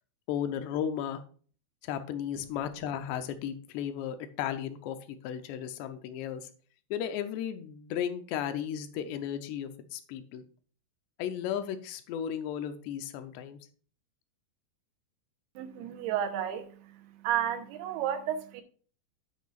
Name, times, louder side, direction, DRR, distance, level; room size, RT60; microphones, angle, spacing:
voice 1, 0.3-1.2 1.8-6.5 6.9-10.4 11.2-13.6, left 9 dB, 85° left, 9 dB, 2.9 m, -35 dB
voice 2, 15.6-16.7 17.2-18.6, right 10 dB, 75° right, 7 dB, 2.8 m, -31 dB
9.4 x 9.4 x 2.4 m, 0.43 s
omnidirectional pair, 4.8 m